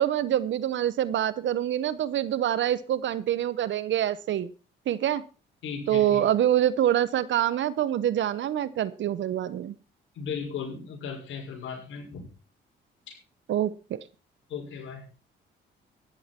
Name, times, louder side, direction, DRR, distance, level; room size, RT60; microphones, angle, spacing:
voice 1, 0.0-4.5 4.9-5.2 5.9-9.8 13.5-14.0, right 11 dB, 70° right, 18 dB, 1.0 m, -25 dB
voice 2, 5.6-6.2 10.1-12.3 13.1-13.2 14.5-15.1, left 6 dB, 75° left, 1 dB, 6.1 m, -36 dB
14.0 x 11.0 x 4.5 m, 0.35 s
cardioid pair, 90°, 20 cm